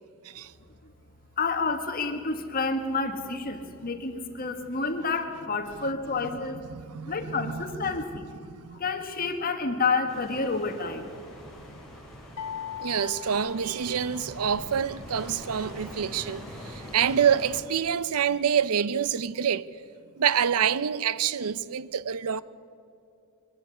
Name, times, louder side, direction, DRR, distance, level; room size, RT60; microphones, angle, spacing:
voice 1, 1.4-4.1 4.4-6.5 7.1-8.0 8.8-11.0, left 4 dB, 40° left, 1.7 m, -29 dB
voice 2, 6.8-7.6 8.5-8.8 12.8-19.7 20.2-22.4, right 8 dB, 80° right, 0.6 m, -27 dB
sound 1, 10.1-17.6, left 1 dB, ahead, 3.5 m, -43 dB
sound 2, 12.4-14.5, left 8 dB, 60° left, 1.6 m, -39 dB
22.5 x 12.0 x 9.9 m
head